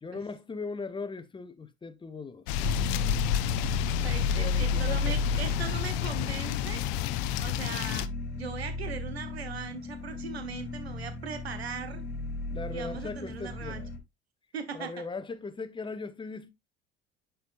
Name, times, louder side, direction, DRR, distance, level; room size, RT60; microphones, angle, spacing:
voice 1, 0.0-3.2 4.4-5.2 12.5-13.9 14.7-16.5, left 4 dB, 15° left, 0.9 m, -39 dB
sound 1, 2.5-8.1, left 13 dB, 55° left, 0.6 m, -31 dB
sound 2, 2.6-14.0, left 3 dB, 35° left, 1.4 m, -33 dB
voice 2, 3.6-6.8 7.4-8.1 8.3-12.0 12.7-13.8 14.5-14.9, right 6 dB, 80° right, 1.1 m, -39 dB
9.5 x 4.8 x 2.5 m
figure-of-eight pair, 65°, 31 cm